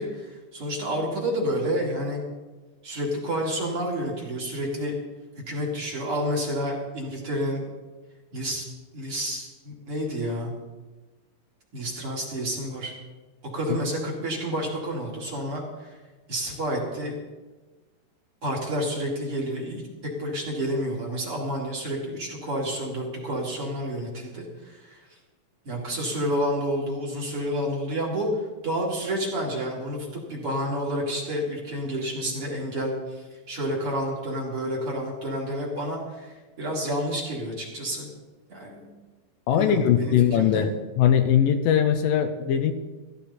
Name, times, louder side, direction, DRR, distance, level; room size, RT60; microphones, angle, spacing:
voice 1, 0.0-2.2 2.8-5.0 5.5-7.6 8.3-8.7 8.9-10.5 11.7-12.9 13.4-15.9 16.3-17.2 18.4-19.8 20.2-25.1 25.6-28.3 28.6-38.1 38.5-38.9 39.5-40.6, equal, 40° right, -3 dB, 3.4 m, -29 dB
voice 2, 39.5-40.7 41.0-42.7, left 9 dB, 75° left, 8 dB, 2.3 m, -21 dB
15.0 x 15.0 x 4.3 m, 1.2 s
omnidirectional pair, 4.1 m